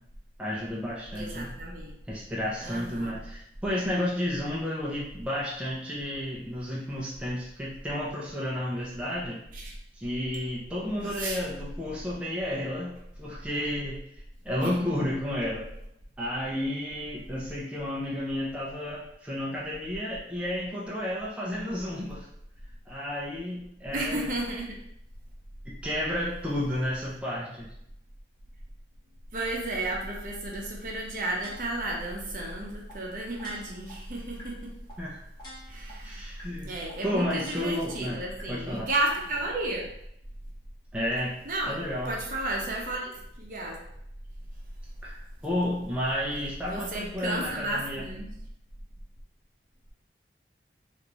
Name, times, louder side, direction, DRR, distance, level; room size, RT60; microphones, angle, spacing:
voice 1, 0.4-1.5 2.1-9.4 9.9-15.7 16.2-22.3 22.9-24.3 25.7-27.7 35.0-35.2 36.0-36.7 37.0-38.2 38.5-38.9 40.9-41.3 41.7-42.1 45.0-48.0, left 1 dB, 5° right, -6 dB, 0.5 m, -32 dB
voice 2, 1.1-1.9 2.6-3.2 9.5-9.7 11.0-11.4 14.6-14.7 23.9-24.8 29.3-34.7 35.7-36.3 36.6-39.9 41.4-41.8 42.1-43.1 43.4-43.8 46.7-48.3, right 2 dB, 50° right, -1 dB, 0.7 m, -33 dB
sound 1, 31.4-31.9 32.4-32.5 32.9-33.0 33.4-33.9 34.4-34.5 34.9-35.0 35.4-35.9 36.4-36.5 36.9-37.0 37.4-37.9 38.4-38.5, left 1 dB, 25° left, 0.9 m, -46 dB
3.3 x 2.5 x 3.0 m, 0.76 s
head